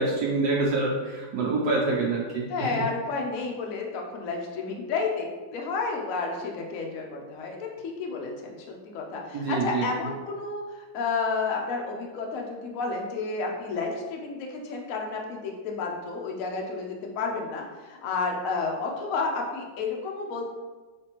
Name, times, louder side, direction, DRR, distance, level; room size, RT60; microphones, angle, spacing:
voice 1, 0.0-2.8 9.3-9.9, right 3 dB, 75° right, -3 dB, 0.9 m, -26 dB
voice 2, 2.5-10.6 10.9-20.5, left 4 dB, 75° left, 0 dB, 0.7 m, -31 dB
5.0 x 3.3 x 2.9 m, 1.3 s
omnidirectional pair, 2.3 m